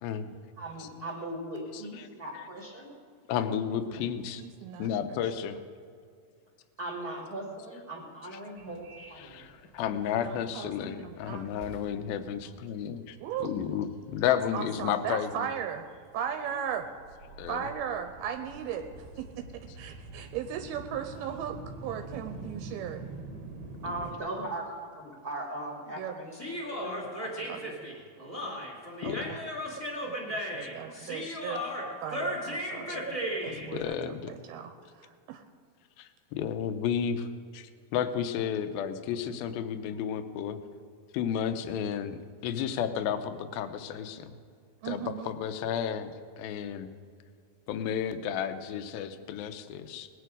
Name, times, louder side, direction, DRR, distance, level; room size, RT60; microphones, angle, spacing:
voice 1, 0.0-0.3 3.3-4.4 4.8-5.6 9.2-13.2 13.4-15.5 17.4-17.7 29.0-29.3 30.6-30.7 31.0-31.4 32.9-33.0 33.7-34.3 36.0-37.3 37.5-40.6 41.1-42.2 42.4-44.4 44.9-46.1 46.4-46.9 47.7-50.1, left 8 dB, 80° left, 9 dB, 2.4 m, -32 dB
voice 2, 0.6-2.9 6.8-9.4 23.8-27.8 28.2-28.6, right 1 dB, 30° right, -3 dB, 1.8 m, -39 dB
voice 3, 4.4-5.2 10.1-12.6 13.2-13.5 14.3-15.9 16.1-16.9 17.5-23.1 26.0-26.1 27.5-27.6 29.0-29.4 30.0-31.6 32.0-33.2 33.4-35.4 44.8-45.3, right 8 dB, 80° right, 6 dB, 2.5 m, -38 dB
Subway metro underground, 8.6-24.2, right 3 dB, 60° right, 2.1 m, -47 dB
Human voice, 26.3-33.7, equal, 10° left, 1.9 m, -35 dB
19.5 x 9.2 x 5.1 m, 2.2 s
omnidirectional pair, 4.6 m